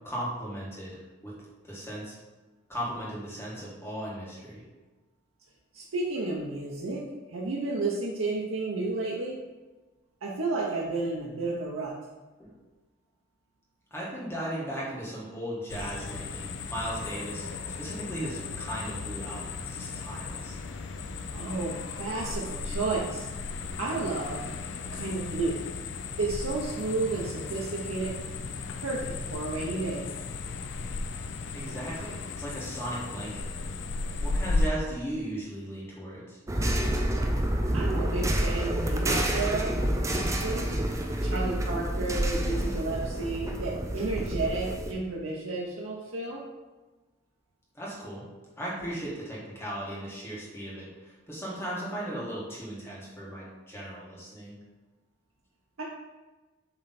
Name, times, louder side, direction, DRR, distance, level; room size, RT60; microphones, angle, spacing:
voice 1, 0.0-0.9 1.2-1.3 1.6-2.1 2.7-4.6 12.4-12.5 13.9-17.5 17.8-20.6 31.5-33.4 34.2-36.4 47.7-48.2 48.6-50.9 51.3-54.5, right 1 dB, 10° left, -6 dB, 1.5 m, -37 dB
voice 2, 5.7-7.0 7.3-9.4 10.2-11.9 21.3-23.3 23.8-24.4 24.9-25.6 26.2-28.1 28.8-30.1 37.7-39.8 40.1-40.7 41.2-46.4 55.8-55.9, right 3 dB, 90° right, -4 dB, 0.8 m, -32 dB
sound 1, 15.7-34.7, left 3 dB, 60° left, 0.4 m, -35 dB
sound 2, 36.5-44.9, right 1 dB, 15° right, 0.4 m, -28 dB
7.3 x 3.3 x 4.2 m, 1.2 s
head